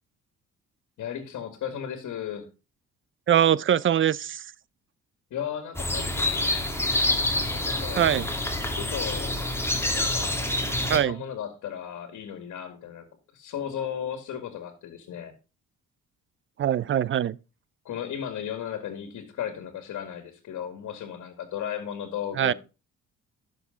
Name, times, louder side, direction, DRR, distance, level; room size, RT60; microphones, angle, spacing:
voice 1, 1.0-2.5 5.3-6.8 7.5-8.1 8.8-9.4 9.9-13.0 13.3-15.3 17.8-22.5, left 9 dB, 70° left, 2.0 m, -35 dB
voice 2, 3.3-4.4 7.9-8.3 10.9-11.2 16.6-17.4 22.4-22.5, right 10 dB, 40° right, 0.5 m, -22 dB
sound 1, 5.7-11.0, left 1 dB, 10° left, 2.2 m, -27 dB
11.0 x 6.4 x 3.8 m
cardioid pair, 90°, 30 cm